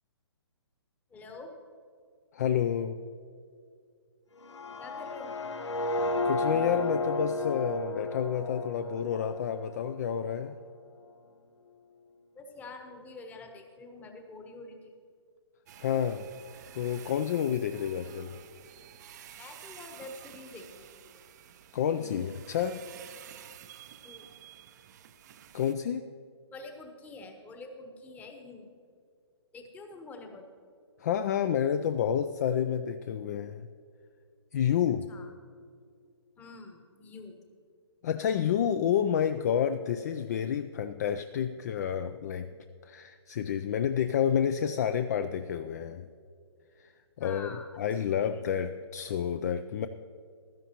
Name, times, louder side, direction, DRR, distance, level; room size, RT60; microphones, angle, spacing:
voice 1, 1.1-1.5 4.8-5.3 12.3-15.0 19.4-21.0 22.0-22.3 24.0-24.3 26.5-28.7 29.5-30.5 35.1-35.3 36.4-37.4 47.2-47.8 48.0-48.7, left 3 dB, 10° left, 5 dB, 1.0 m, -46 dB
voice 2, 2.3-3.0 5.8-5.9 6.2-10.6 15.8-16.3 16.7-18.4 21.7-22.8 25.5-26.0 31.0-33.7 34.5-35.1 38.0-42.5 42.8-46.1 46.8-46.9 47.2-49.9, left 8 dB, 35° left, 10 dB, 0.3 m, -29 dB
sound 1, 4.4-10.4, left 2 dB, 80° left, 0.8 m, -33 dB
sound 2, 15.7-25.7, right 10 dB, 40° right, 0.5 m, -51 dB
15.5 x 12.5 x 2.9 m, 2.3 s
hypercardioid pair, 140°, 15 cm